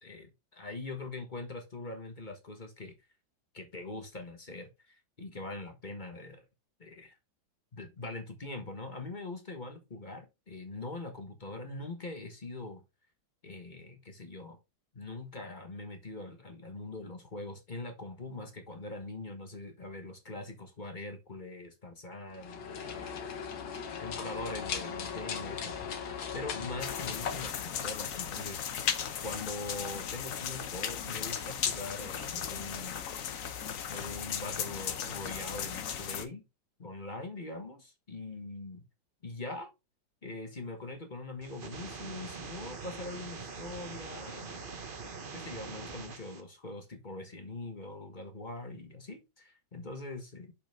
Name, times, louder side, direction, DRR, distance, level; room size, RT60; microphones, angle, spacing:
voice 1, 0.0-2.9 3.5-6.4 6.8-7.1 7.7-12.8 13.4-14.6 14.9-23.5 24.0-28.9 29.2-33.1 33.9-36.4 36.8-38.8 39.2-39.7 40.2-44.7 45.0-50.5, left 2 dB, 30° left, 1.3 m, -42 dB
sound 1, 22.3-28.5, left 6 dB, 75° left, 1.9 m, -39 dB
sound 2, 26.8-36.2, left 8 dB, 55° left, 1.0 m, -36 dB
sound 3, 41.4-46.4, right 4 dB, 35° right, 0.9 m, -43 dB
6.8 x 5.4 x 3.5 m
omnidirectional pair, 2.1 m